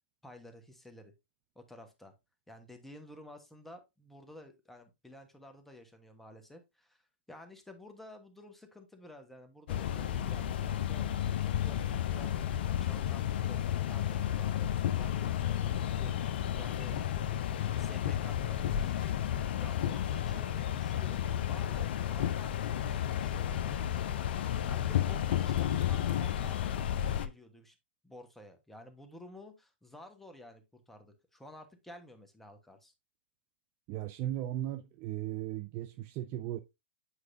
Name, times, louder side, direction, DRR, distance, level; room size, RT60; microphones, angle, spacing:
voice 1, 0.2-1.1 1.5-2.1 2.5-7.0 7.3-13.6 13.9-17.0 17.8-19.3 19.6-21.2 21.5-23.9 24.7-26.6 27.2-27.8 28.0-32.9, left 1 dB, 5° left, 1.3 m, -52 dB
sound 1, 9.7-27.3, left 10 dB, 60° left, 0.7 m, -32 dB
voice 2, 33.9-36.6, right 13 dB, 35° right, 0.5 m, -37 dB
8.3 x 4.7 x 2.7 m
hypercardioid pair, 120°, 6 cm